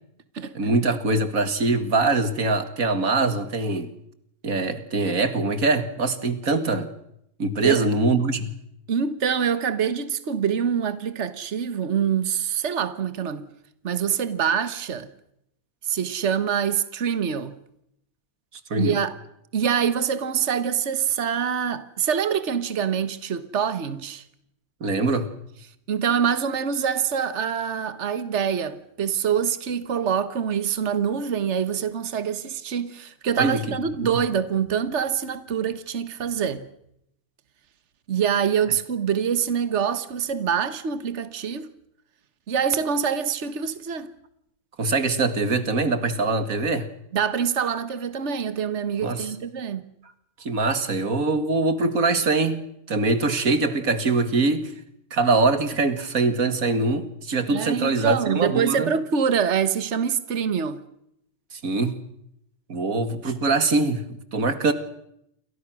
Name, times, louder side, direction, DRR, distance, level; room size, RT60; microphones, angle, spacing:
voice 1, 0.5-3.9 4.4-6.9 7.4-8.5 18.7-19.0 24.8-25.3 33.4-33.8 34.0-34.2 44.8-46.9 49.0-49.3 50.4-52.6 52.9-54.7 55.1-58.9 61.5-62.0 62.7-64.7, right 3 dB, 35° right, 1.9 m, -23 dB
voice 2, 8.9-13.5 13.8-15.1 15.8-17.5 18.8-19.1 19.5-24.2 25.9-36.6 38.1-41.7 42.5-44.1 47.1-49.8 57.5-60.8, right 7 dB, 70° right, 0.6 m, -25 dB
29.0 x 23.5 x 6.3 m
omnidirectional pair, 3.3 m